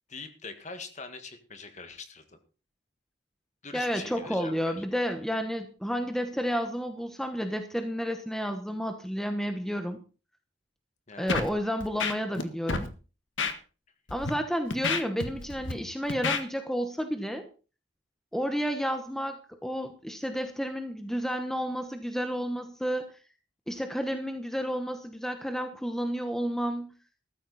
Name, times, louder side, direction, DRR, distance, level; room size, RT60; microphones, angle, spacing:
voice 1, 0.1-2.4 3.6-4.8 11.1-11.4, left 4 dB, 35° left, 8 dB, 1.8 m, -43 dB
voice 2, 3.7-10.0 11.2-12.9 14.1-17.5 18.3-23.1 23.7-26.9, equal, ahead, 6 dB, 1.1 m, -31 dB
Scratching (performance technique), 11.3-11.5 11.8-12.4 12.7-12.9 13.4-13.5 14.1-14.3 14.7-15.7 16.1-16.4, left 4 dB, 70° left, 1.7 m, -29 dB
14.5 x 13.0 x 4.2 m, 0.35 s
head